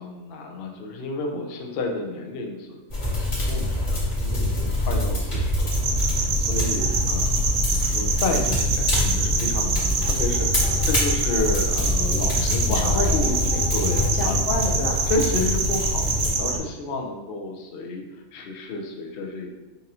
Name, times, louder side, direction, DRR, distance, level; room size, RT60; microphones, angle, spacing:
voice 1, 0.0-2.8 3.0-13.3 13.7-14.4 15.1-18.0 18.3-19.5, left 3 dB, 55° left, 2 dB, 0.7 m, -31 dB
sound 1, 2.9-16.3, left 1 dB, 40° left, 1.6 m, -25 dB
sound 2, 5.7-16.6, right 4 dB, 70° right, 0.8 m, -26 dB
voice 2, 12.3-15.0, left 3 dB, 90° left, 0 dB, 1.1 m, -30 dB
5.3 x 2.5 x 2.8 m, 1.2 s
omnidirectional pair, 1.4 m